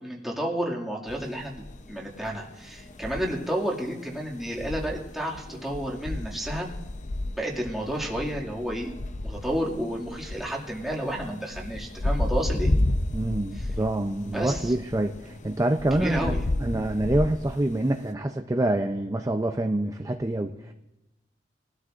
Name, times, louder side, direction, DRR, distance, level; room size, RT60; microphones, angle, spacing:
voice 1, 0.0-1.5 1.9-6.7 7.4-8.9 9.2-12.7 13.6-13.7 14.3-14.7 15.9-16.5, right 1 dB, ahead, -4 dB, 2.2 m, -31 dB
sound 1, 1.1-18.1, left 1 dB, 40° left, 0.7 m, -32 dB
voice 2, 13.1-16.3 16.6-20.7, right 1 dB, 20° right, 5 dB, 0.5 m, -26 dB
22.5 x 13.0 x 2.5 m, 0.98 s
head